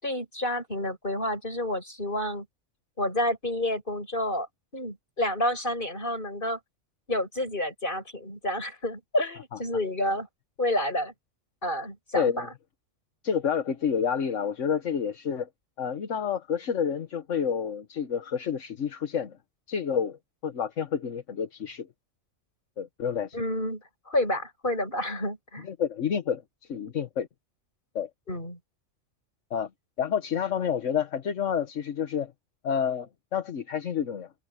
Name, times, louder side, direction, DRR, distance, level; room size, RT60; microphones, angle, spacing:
voice 1, 0.0-2.5 3.0-4.5 4.7-6.6 7.1-10.3 10.6-11.1 11.6-12.5 23.3-25.7 28.3-28.6, left 1 dB, 40° left, 7.9 m, -29 dB
voice 2, 12.1-12.5 13.2-15.5 15.8-19.4 19.7-21.9 22.8-23.4 25.6-27.3 27.9-28.1 29.5-29.7 30.0-32.3 32.6-34.3, left 7 dB, 75° left, 1.5 m, -29 dB
omnidirectional pair, 1.3 m